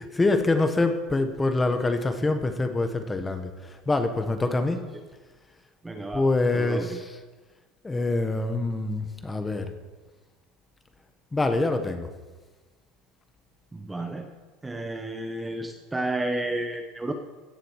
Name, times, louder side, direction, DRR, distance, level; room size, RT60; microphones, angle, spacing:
voice 1, 0.0-4.9 6.1-7.2 7.8-9.7 11.3-12.1, left 2 dB, 10° left, 7 dB, 1.2 m, -25 dB
voice 2, 5.8-6.3 6.5-7.0 13.7-14.3 14.6-17.1, right 1 dB, 10° right, 4 dB, 1.0 m, -31 dB
16.0 x 7.6 x 6.5 m, 1.3 s
cardioid pair, 150°, 0 cm